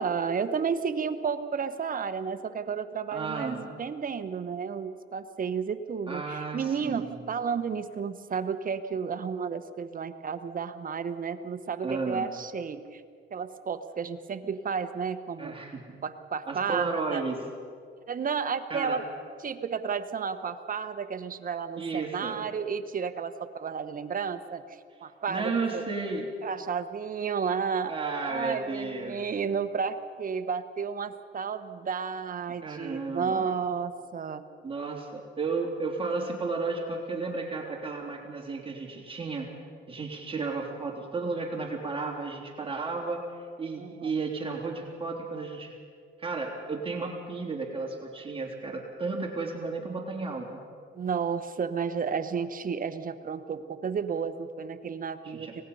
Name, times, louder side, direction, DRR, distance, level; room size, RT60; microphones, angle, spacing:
voice 1, 0.0-13.0 13.3-15.6 16.0-17.2 18.1-19.0 19.4-24.6 25.0-25.8 26.4-27.9 28.2-34.4 43.8-44.2 50.9-55.6, right 6 dB, 45° right, 10 dB, 1.1 m, -32 dB
voice 2, 3.1-3.6 6.1-7.2 11.8-12.3 15.4-15.8 16.5-17.4 18.7-19.0 21.8-22.4 25.3-26.3 27.9-29.2 32.6-33.5 34.6-39.5 39.9-43.2 43.6-45.8 46.2-50.6 55.2-55.6, right 4 dB, 25° right, -1 dB, 3.4 m, -33 dB
24.5 x 19.0 x 5.6 m, 2.1 s
cardioid pair, 90°, 20 cm